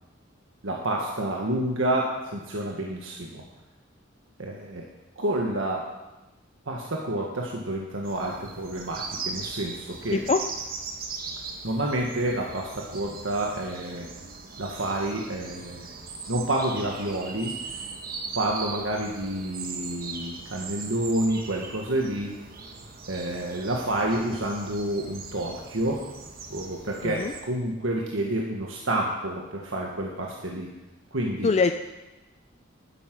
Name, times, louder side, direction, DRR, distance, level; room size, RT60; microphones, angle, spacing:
voice 1, 0.6-3.4 4.4-4.9 5.2-5.9 6.7-10.2 11.6-14.1 14.6-15.9 16.3-17.5 18.3-22.4 23.1-26.0 26.5-30.7 31.1-31.5, right 1 dB, 75° right, -1 dB, 1.5 m, -29 dB
sound 1, 8.0-27.4, right 4 dB, 50° right, 1.5 m, -39 dB
voice 2, 10.1-10.4 27.0-27.3 31.4-31.7, left 4 dB, 35° left, 7 dB, 0.4 m, -22 dB
11.5 x 9.9 x 6.1 m, 1.1 s
head